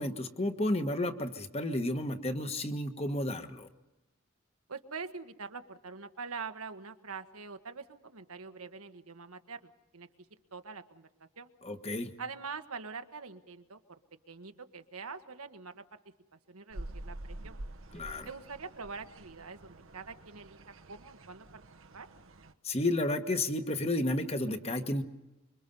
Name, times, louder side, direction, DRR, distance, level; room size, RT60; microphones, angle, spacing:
voice 1, 0.0-3.7 11.6-12.1 17.9-18.3 22.6-25.0, left 1 dB, 30° left, 7 dB, 1.4 m, -32 dB
voice 2, 4.7-10.1 10.5-11.5 12.2-13.8 14.3-16.0 16.3-17.6 18.2-20.6 20.9-21.6 21.9-22.1, right 5 dB, 80° right, 8 dB, 1.4 m, -44 dB
sound 1, 16.7-22.5, right 1 dB, 65° right, 1.1 m, -47 dB
26.0 x 24.0 x 5.5 m, 0.97 s
head